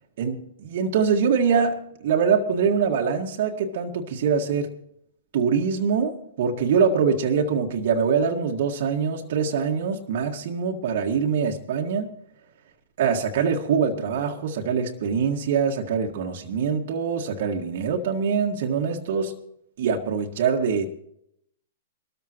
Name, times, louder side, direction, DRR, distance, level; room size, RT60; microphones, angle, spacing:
voice 1, 0.2-4.7 5.3-12.1 13.0-19.3 19.8-20.9, right 6 dB, 55° right, 1 dB, 1.8 m, -24 dB
23.0 x 14.0 x 3.0 m, 0.75 s
hypercardioid pair, 115°, 0 cm